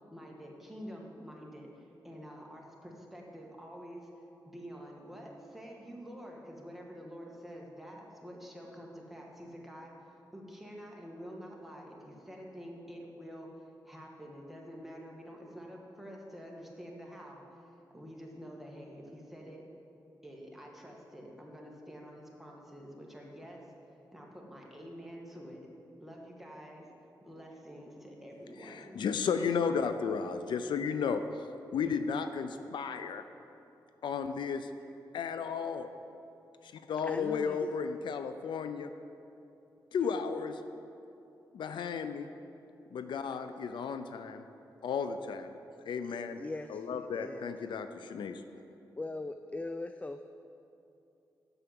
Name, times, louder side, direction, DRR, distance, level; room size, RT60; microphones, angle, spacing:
voice 1, 0.1-4.1 4.4-13.5 13.9-17.4 17.9-19.6 20.2-23.6 24.1-25.7 26.0-26.9 27.2-29.0, equal, 5° right, -2 dB, 1.9 m, -48 dB
voice 2, 28.6-31.2 31.7-33.2 34.0-34.7 35.1-35.9 36.6-38.9 39.9-40.6 41.5-42.3 42.9-44.4 44.8-45.5 45.9-46.4 46.7-48.4, left 6 dB, 85° left, 9 dB, 0.5 m, -34 dB
voice 3, 37.0-37.9 46.1-47.5 49.0-50.3, left 2 dB, 15° left, 8 dB, 0.4 m, -41 dB
7.9 x 6.9 x 7.6 m, 2.8 s
cardioid pair, 70°, 8 cm